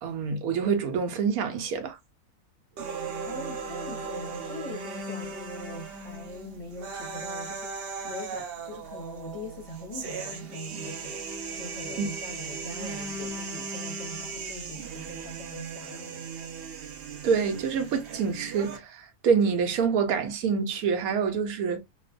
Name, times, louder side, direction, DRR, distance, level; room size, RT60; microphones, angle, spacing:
voice 1, 0.0-2.0 12.0-12.1 17.2-21.8, right 6 dB, 85° right, 1.1 m, -26 dB
sound 1, 2.8-18.8, right 4 dB, 60° right, 0.6 m, -37 dB
voice 2, 3.2-11.2 11.6-16.2, left 2 dB, 35° left, 0.7 m, -42 dB
3.0 x 2.0 x 2.4 m
omnidirectional pair, 1.5 m